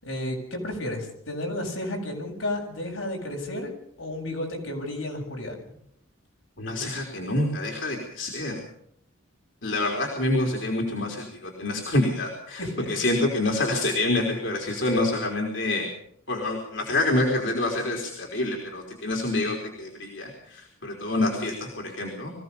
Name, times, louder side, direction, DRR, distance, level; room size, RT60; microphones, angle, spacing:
voice 1, 0.0-3.7 4.0-5.6 12.6-12.9, left 1 dB, 85° left, 1 dB, 7.7 m, -32 dB
voice 2, 6.6-8.6 9.6-15.8 16.3-22.3, left 2 dB, 70° left, 0 dB, 4.0 m, -27 dB
24.5 x 16.5 x 7.1 m, 0.69 s
head